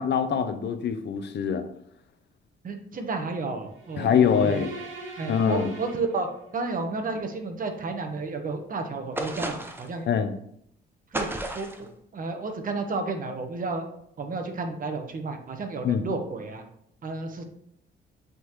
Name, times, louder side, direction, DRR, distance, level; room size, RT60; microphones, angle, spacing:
voice 1, 0.0-1.7 4.0-4.7 5.3-5.7 10.1-10.3 15.8-16.1, left 7 dB, 60° left, 9 dB, 0.7 m, -24 dB
voice 2, 2.6-4.6 5.2-6.3 6.5-10.1 11.1-11.3 11.5-11.9 12.1-13.8 14.2-16.6 17.0-17.4, right 3 dB, 45° right, 5 dB, 1.1 m, -32 dB
sound 1, 3.7-6.8, right 2 dB, 70° right, 2.0 m, -42 dB
sound 2, 9.2-10.0 11.1-11.9, right 1 dB, 10° right, 0.9 m, -32 dB
8.1 x 3.9 x 3.1 m, 0.70 s
cardioid pair, 90°, 20 cm